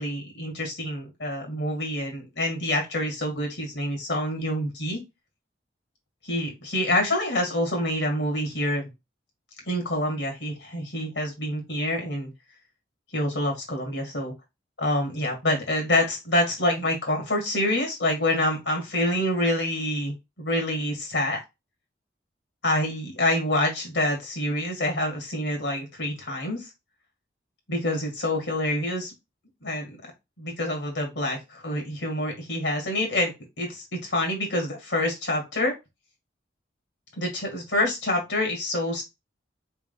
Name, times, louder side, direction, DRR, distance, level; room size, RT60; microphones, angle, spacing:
voice 1, 0.0-5.0 6.2-8.8 9.7-12.3 13.1-14.3 14.8-21.4 22.6-26.7 27.7-29.1 29.6-30.0 30.4-33.3 33.6-35.7 37.2-39.0, left 1 dB, 75° left, 1 dB, 1.7 m, -27 dB
4.5 x 3.6 x 2.3 m, 0.23 s
head